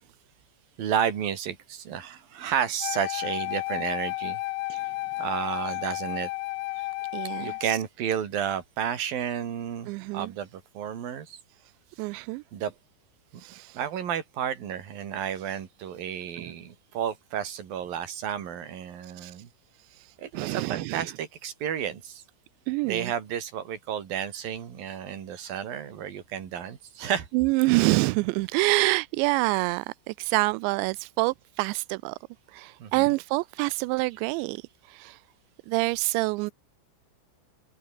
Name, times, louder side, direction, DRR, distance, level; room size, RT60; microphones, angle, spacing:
voice 1, 0.8-4.4 5.2-6.3 7.4-11.4 12.5-12.7 13.7-19.5 20.2-22.2 22.8-27.3 32.8-33.2, right 9 dB, 50° right, 4.2 m, -32 dB
Wind instrument woodwind instrument, 2.8-7.7, left 20 dB, 80° left, 2.7 m, -32 dB
voice 2, 7.1-7.8 9.9-10.3 12.0-12.4 13.4-13.8 19.0-19.3 19.9-21.1 22.7-23.1 27.3-32.2 32.5-35.2 35.7-36.5, right 24 dB, 85° right, 2.6 m, -27 dB
omnidirectional pair, 5.6 m